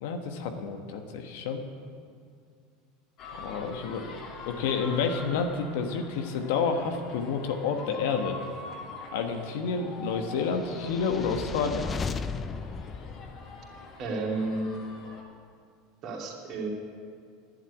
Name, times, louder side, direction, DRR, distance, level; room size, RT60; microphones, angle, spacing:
voice 1, 0.0-1.6 3.3-4.1 4.5-8.4 9.1-11.9, left 5 dB, 75° left, 5 dB, 1.2 m, -29 dB
sound 1, 3.2-15.2, left 3 dB, 50° left, 2.3 m, -44 dB
sound 2, 10.5-13.9, left 5 dB, 25° left, 0.5 m, -36 dB
voice 2, 14.0-14.7 16.0-16.7, right 3 dB, 45° right, -2 dB, 2.8 m, -31 dB
11.0 x 7.7 x 9.7 m, 2.2 s
supercardioid pair, 110°, 0 cm